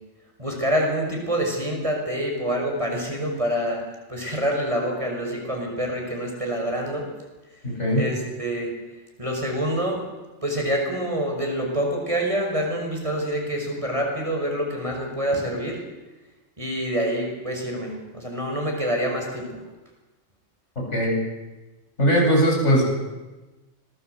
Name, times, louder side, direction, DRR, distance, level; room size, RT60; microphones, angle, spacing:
voice 1, 0.4-3.8 4.1-7.1 7.9-8.7 9.2-10.0 10.4-15.8 16.6-19.6, equal, 25° right, 1 dB, 5.8 m, -26 dB
voice 2, 7.6-8.0 20.9-21.2 22.0-22.8, equal, 60° left, -1 dB, 8.3 m, -19 dB
26.5 x 20.0 x 8.2 m, 1.2 s
omnidirectional pair, 1.3 m